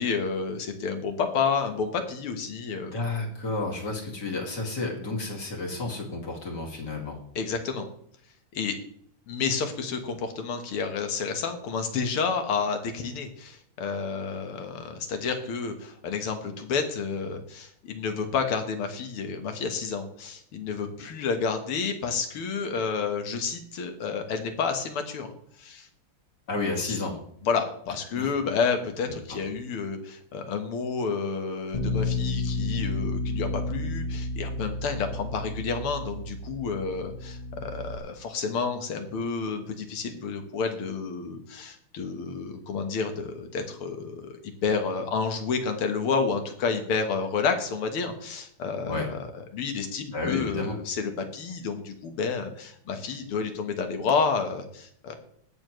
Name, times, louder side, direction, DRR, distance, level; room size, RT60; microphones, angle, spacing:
voice 1, 0.0-3.0 7.4-7.9 8.5-8.8 9.3-25.3 25.6-25.9 26.8-27.0 27.4-49.3 49.5-55.1, left 5 dB, 75° left, 6 dB, 2.2 m, -30 dB
voice 2, 2.9-7.2 26.5-27.2 28.1-28.3 29.3-29.4 48.9-49.1 50.1-50.7, left 3 dB, 50° left, -1 dB, 2.9 m, -31 dB
Bass guitar, 31.7-38.0, left 2 dB, 20° left, 1.0 m, -31 dB
20.0 x 6.8 x 3.2 m, 0.66 s
omnidirectional pair, 2.4 m